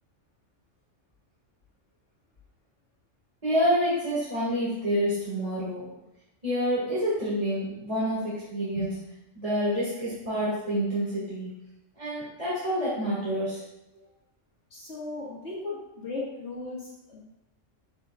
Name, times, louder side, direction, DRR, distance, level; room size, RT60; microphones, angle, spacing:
voice 1, 3.4-5.9 6.4-9.0 9.3-11.5 12.0-13.6, equal, 30° right, -9 dB, 2.1 m, -28 dB
voice 2, 14.7-17.2, left 3 dB, 65° left, -6 dB, 2.0 m, -37 dB
8.4 x 7.2 x 2.4 m, 0.91 s
omnidirectional pair, 1.3 m